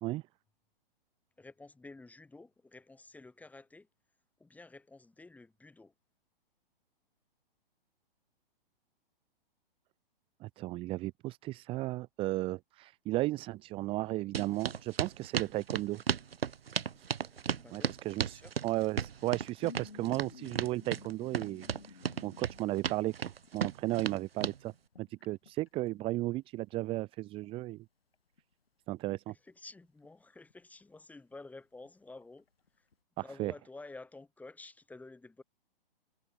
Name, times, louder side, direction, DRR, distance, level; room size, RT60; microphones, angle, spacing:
voice 1, 1.4-3.9 4.4-5.9 17.3-18.6 29.3-32.5 33.2-35.4, left 3 dB, 5° left, 4.1 m, -51 dB
voice 2, 10.4-16.0 17.7-23.1 23.5-24.7 25.0-27.8 28.9-29.3 33.2-33.5, right 18 dB, 20° right, 0.7 m, -35 dB
sound 1, 13.5-15.8 16.1-18.0 19.1-23.6 23.8-26.1 27.2-27.5 27.7-27.8 28.1-28.7 29.1-29.2 29.5-30.1 30.5-31.0 31.3-31.4 31.9-32.0 32.2-32.9, left 5 dB, 80° left, 3.6 m, -55 dB
sound 2, 14.3-24.6, right 7 dB, 80° right, 0.9 m, -35 dB
hypercardioid pair, 130°, 29 cm